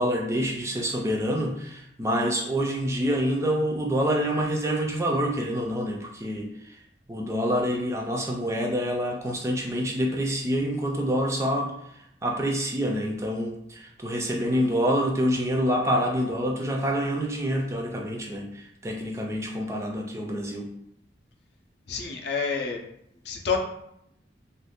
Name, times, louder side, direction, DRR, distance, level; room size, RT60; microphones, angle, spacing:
voice 1, 0.0-6.8 7.1-20.7, equal, 15° right, 1 dB, 0.3 m, -27 dB
voice 2, 21.9-22.8 23.2-23.6, left 5 dB, 65° left, 1 dB, 0.5 m, -28 dB
2.5 x 2.3 x 3.5 m, 0.78 s
head